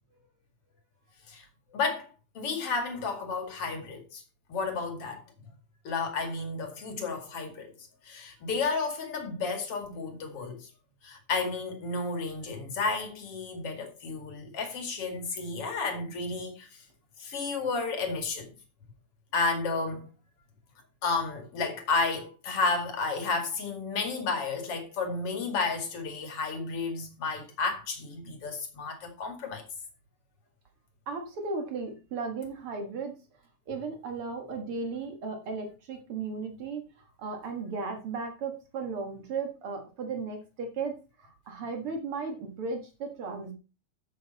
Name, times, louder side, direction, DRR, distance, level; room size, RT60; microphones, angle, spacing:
voice 1, 1.7-2.1 2.3-4.2 4.5-5.2 5.8-7.7 8.0-10.7 11.0-16.8 17.2-18.5 19.3-20.1 21.0-29.6, left 4 dB, 45° left, 2.2 m, -32 dB
voice 2, 31.1-33.1 33.7-36.9 37.2-43.5, right 4 dB, 70° right, 1.3 m, -35 dB
12.0 x 7.7 x 4.1 m
omnidirectional pair, 5.2 m